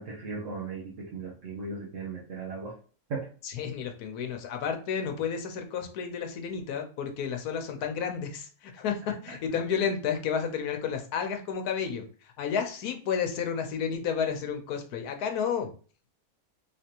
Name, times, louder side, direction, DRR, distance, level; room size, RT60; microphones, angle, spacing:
voice 1, 0.0-2.7 3.1-3.3, right 4 dB, 60° right, -5 dB, 1.2 m, -37 dB
voice 2, 3.4-15.7, left 7 dB, 80° left, 5 dB, 1.3 m, -31 dB
3.7 x 3.3 x 2.8 m, 0.39 s
omnidirectional pair, 1.6 m